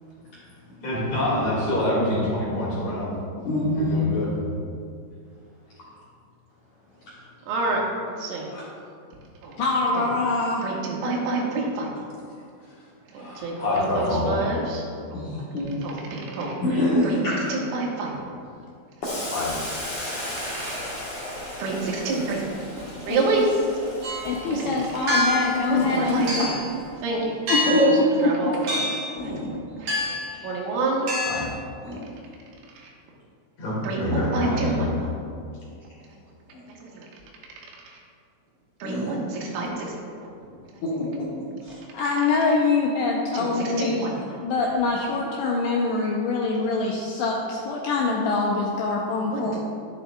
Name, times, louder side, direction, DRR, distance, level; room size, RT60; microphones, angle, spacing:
voice 1, 0.8-3.1 3.8-4.3 8.5-8.6 13.2-14.4 19.3-19.5 31.2-31.5 33.6-34.9, left 1 dB, 45° left, -7 dB, 2.7 m, -26 dB
voice 2, 3.4-4.0 15.1-15.7 16.6-17.4 27.7-27.9 29.2-29.5 31.8-32.0 36.5-36.6 38.8-39.1 39.4-39.5 40.8-41.3, left 1 dB, 70° left, -9 dB, 1.9 m, -25 dB
voice 3, 7.5-7.8 8.2-8.5 9.4-9.5 10.0-10.1 10.6-11.9 13.1-14.8 15.1-15.2 15.8-16.6 17.0-17.2 17.5-18.1 20.5-20.8 21.6-22.4 23.0-23.4 24.4-24.7 25.7-26.5 27.0-27.4 27.7-27.8 28.2-28.8 29.1-29.5 29.8-31.5 32.8-32.9 33.8-35.1 36.7-37.1 38.8-39.9 43.3-43.5 43.8-44.1 49.3-49.6, right 3 dB, 90° right, -2 dB, 4.0 m, -28 dB
voice 4, 9.6-10.7 23.0-23.4 24.2-26.5 27.5-28.3 41.9-49.6, left 3 dB, 90° left, -2 dB, 2.4 m, -24 dB
Boiling, 19.0-26.8, left 1 dB, 30° left, 1.6 m, -36 dB
sound 1, 24.0-24.3 25.1-25.6 26.3-26.7 27.5-28.0 28.7-29.1 29.9-30.3 31.1-31.5, left 1 dB, 55° right, 2.6 m, -25 dB
11.0 x 11.0 x 2.3 m, 2.4 s
omnidirectional pair, 5.7 m